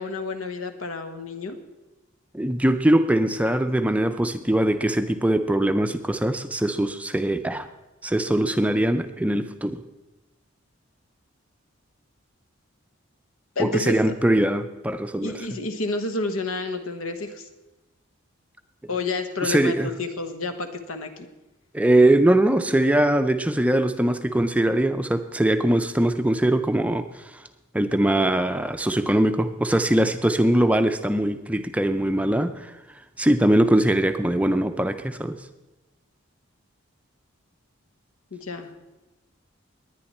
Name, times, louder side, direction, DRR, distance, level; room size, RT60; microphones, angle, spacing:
voice 1, 0.0-1.6 13.5-14.1 15.2-17.5 18.9-21.3 22.7-23.0 38.3-38.7, left 3 dB, 90° left, 7 dB, 1.3 m, -30 dB
voice 2, 2.3-7.7 8.0-9.8 13.6-15.5 19.4-19.9 21.7-27.4 27.7-32.7 33.2-35.4, right 1 dB, 5° right, 8 dB, 0.4 m, -21 dB
20.5 x 9.7 x 4.3 m, 1.1 s
head